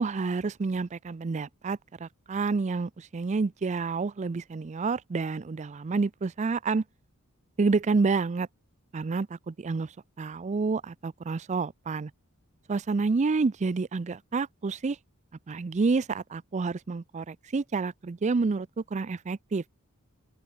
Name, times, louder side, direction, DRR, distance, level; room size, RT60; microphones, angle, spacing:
voice 1, 0.0-6.8 7.6-8.5 8.9-9.9 10.2-12.1 12.7-15.0 15.5-19.6, right 4 dB, 30° right, 0.4 m, -29 dB
open air
head